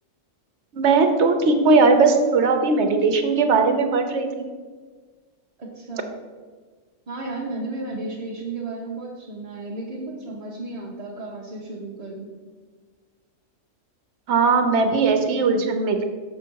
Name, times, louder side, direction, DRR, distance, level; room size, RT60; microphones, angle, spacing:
voice 1, 0.7-4.4 14.3-16.0, right 4 dB, 65° right, 6 dB, 1.0 m, -19 dB
voice 2, 5.6-6.1 7.1-12.4, right 2 dB, 35° right, -4 dB, 0.8 m, -33 dB
6.4 x 5.7 x 4.5 m, 1.5 s
omnidirectional pair, 1.3 m